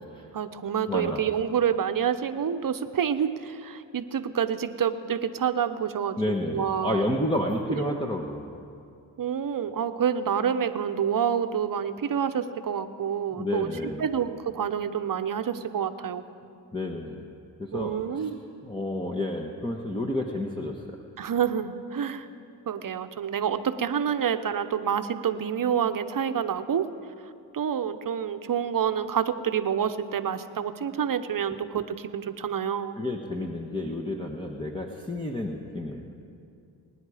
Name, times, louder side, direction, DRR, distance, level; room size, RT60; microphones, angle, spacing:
voice 1, 0.3-6.2 6.5-7.2 7.7-8.0 9.2-13.7 14.0-16.2 17.7-18.4 21.2-22.3 22.7-26.9 27.5-33.0, right 8 dB, 45° right, 10 dB, 0.9 m, -28 dB
voice 2, 0.9-1.2 6.2-8.6 13.4-14.0 16.7-17.3 17.6-18.3 18.6-21.0 33.0-36.1, left 1 dB, 10° left, 0 dB, 1.2 m, -30 dB
22.5 x 9.9 x 5.0 m, 2.5 s
supercardioid pair, 55°, 45 cm